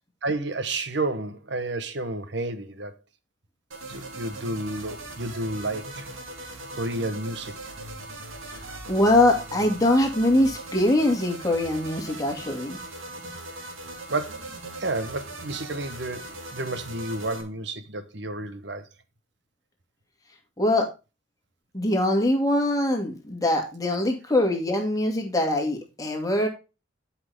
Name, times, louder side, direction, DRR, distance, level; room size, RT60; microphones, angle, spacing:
voice 1, 0.2-2.9 3.9-6.1 6.7-7.6 14.1-18.9, right 2 dB, 60° right, 1.1 m, -31 dB
sound 1, 3.7-17.4, right 2 dB, 85° right, 2.4 m, -39 dB
voice 2, 8.5-12.8 20.6-20.9 21.7-26.5, left 1 dB, 15° left, 2.2 m, -23 dB
11.5 x 5.8 x 3.5 m
head